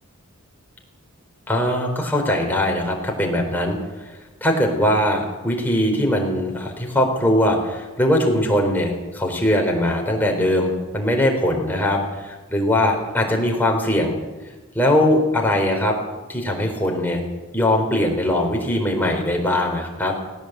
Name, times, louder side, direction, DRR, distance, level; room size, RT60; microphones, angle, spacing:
voice 1, 1.5-3.8 4.4-14.2 14.7-16.0 16.3-17.2 17.5-20.1, left 1 dB, 10° left, 1 dB, 4.2 m, -21 dB
19.0 x 19.0 x 8.1 m, 1.2 s
head